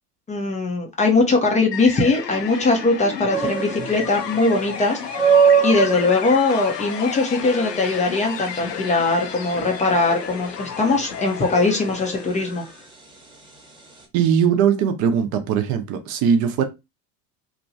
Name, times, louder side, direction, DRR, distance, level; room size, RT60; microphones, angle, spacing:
voice 1, 0.3-12.6, left 3 dB, 15° left, 0.5 m, -21 dB
sound 1, 1.7-12.9, left 6 dB, 80° left, 0.6 m, -32 dB
sound 2, 3.3-14.0, right 6 dB, 10° right, 1.0 m, -25 dB
voice 2, 14.1-16.6, right 7 dB, 40° right, 0.6 m, -20 dB
2.9 x 2.2 x 2.6 m
figure-of-eight pair, 75°, 48 cm